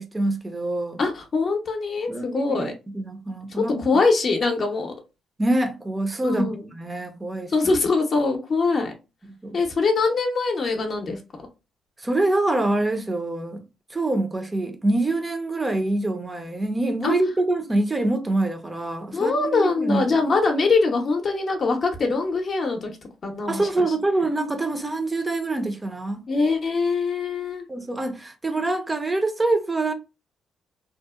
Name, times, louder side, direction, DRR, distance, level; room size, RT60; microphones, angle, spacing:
voice 1, 0.0-1.0 2.1-3.8 5.4-7.5 9.4-9.6 12.0-13.6 13.9-20.2 23.5-26.2 27.7-29.9, right 2 dB, 20° right, 0.5 m, -25 dB
voice 2, 1.0-2.7 3.8-4.9 6.2-6.7 7.5-8.9 9.5-11.2 17.0-17.2 19.1-22.9 23.2-23.8 26.3-27.7, left 3 dB, 45° left, 0.6 m, -23 dB
2.7 x 2.0 x 2.2 m
cardioid pair, 90°, 0 cm